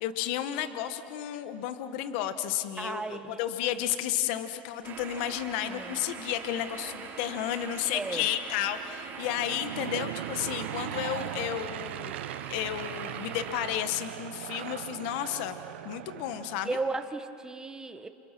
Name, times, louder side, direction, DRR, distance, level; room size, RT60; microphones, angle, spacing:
voice 1, 0.0-15.6 15.8-16.8, left 11 dB, 65° left, 10 dB, 1.3 m, -32 dB
voice 2, 2.8-3.4 5.7-5.9 7.9-8.2 16.6-18.1, right 3 dB, 10° right, 8 dB, 1.6 m, -34 dB
sound 1, 4.8-13.9, right 6 dB, 35° right, 4.2 m, -43 dB
Aircraft / Engine, 9.0-17.0, right 12 dB, 80° right, 0.9 m, -39 dB
28.5 x 28.5 x 6.1 m, 2.6 s
supercardioid pair, 110°, 6 cm